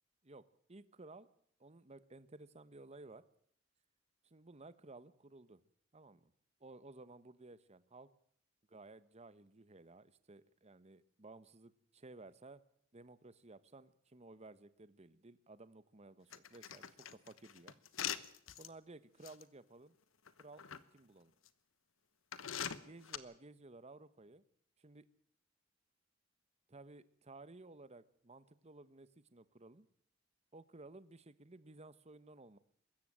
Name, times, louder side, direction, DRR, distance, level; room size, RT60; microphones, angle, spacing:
voice 1, 0.7-1.3 1.6-3.2 4.2-5.6 5.9-6.3 6.6-8.1 8.7-12.6 12.9-17.7 18.6-19.9 20.4-20.6 20.9-21.3 22.8-24.4 24.8-25.0 26.7-29.9 30.5-32.6, right 2 dB, 35° right, 15 dB, 1.1 m, -56 dB
sound 1, 16.3-18.7 19.2-19.4 20.3-20.8 21.5-21.6 22.3-23.2, left 9 dB, 90° left, 1.2 m, -42 dB
23.5 x 14.0 x 8.8 m, 0.65 s
head